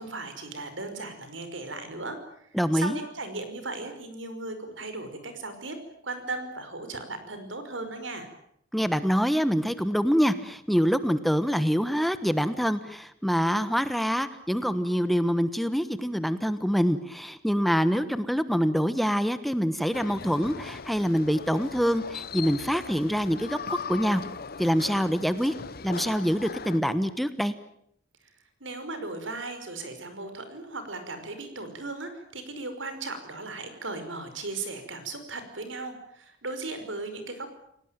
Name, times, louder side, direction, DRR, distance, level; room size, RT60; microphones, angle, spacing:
voice 1, 0.0-2.2 2.7-5.8 6.0-8.3 28.6-37.6, right 3 dB, 85° right, 9 dB, 5.5 m, -37 dB
voice 2, 2.5-3.0 8.7-24.2 24.6-25.5 25.8-27.5, equal, ahead, 12 dB, 1.2 m, -25 dB
sound 1, 19.9-26.8, left 5 dB, 55° left, 1.0 m, -39 dB
28.5 x 18.5 x 9.2 m, 0.72 s
head